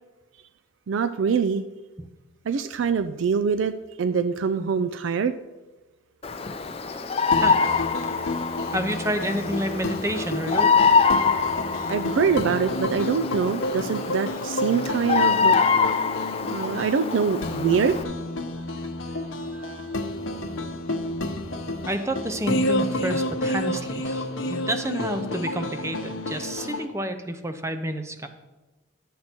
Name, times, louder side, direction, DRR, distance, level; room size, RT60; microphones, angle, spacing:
voice 1, 0.9-1.6 2.5-5.4 11.9-15.6 16.4-18.0 19.5-19.9, right 6 dB, 70° right, 11 dB, 0.4 m, -24 dB
Bird vocalization bird call bird song, 6.2-18.0, left 5 dB, 30° left, 0.5 m, -25 dB
sound 1, 7.3-26.9, left 1 dB, 80° left, 0.9 m, -30 dB
voice 2, 7.3-7.8 8.7-11.0 21.9-28.3, right 1 dB, 15° right, 8 dB, 0.6 m, -29 dB
11.0 x 7.5 x 4.4 m, 1.2 s
head